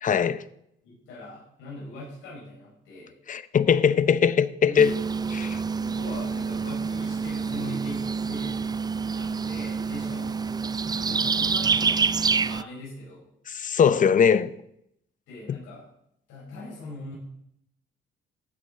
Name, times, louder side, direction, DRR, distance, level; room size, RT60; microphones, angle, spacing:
voice 1, 0.0-0.4 3.3-4.9 5.3-5.6 13.5-14.5 15.5-15.6, left 7 dB, 40° left, 0.7 m, -21 dB
voice 2, 0.8-3.1 4.6-4.9 5.7-8.6 9.1-10.4 11.0-13.3 15.3-15.9 16.3-17.1, left 2 dB, 80° left, 4.9 m, -41 dB
sound 1, 4.8-12.6, right 5 dB, 20° right, 0.4 m, -27 dB
14.5 x 9.3 x 3.7 m
cardioid pair, 90°, 20 cm